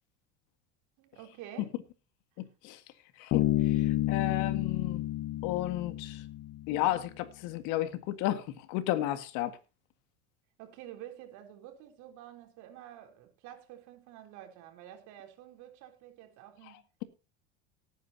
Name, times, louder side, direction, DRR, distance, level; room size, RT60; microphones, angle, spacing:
voice 1, 1.0-1.7 3.2-3.3 10.6-16.8, right 11 dB, 65° right, 3.6 m, -49 dB
voice 2, 2.4-2.8 3.2-5.0 5.4-6.2 6.7-9.6, left 14 dB, 65° left, 1.9 m, -33 dB
Bass guitar, 3.3-6.9, left 14 dB, 50° left, 1.0 m, -30 dB
18.5 x 9.4 x 2.9 m
supercardioid pair, 105°, 32 cm